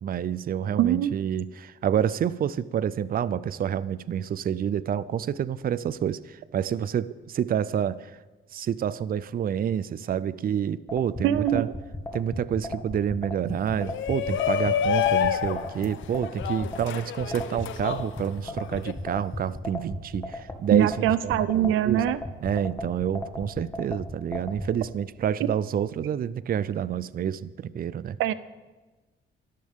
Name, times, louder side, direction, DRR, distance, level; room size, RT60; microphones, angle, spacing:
voice 1, 0.0-8.2 8.5-11.7 12.1-22.0 22.4-28.2, right 9 dB, 45° right, 17 dB, 0.5 m, -28 dB
voice 2, 0.8-1.1 11.2-11.7 20.7-22.2 28.2-28.3, right 12 dB, 90° right, 15 dB, 0.6 m, -23 dB
sound 1, 10.9-24.7, left 1 dB, 15° left, 2.3 m, -34 dB
Shout, 13.8-18.9, left 9 dB, 80° left, 1.0 m, -28 dB
24.0 x 13.0 x 3.7 m, 1.2 s
cardioid pair, 90°, 20 cm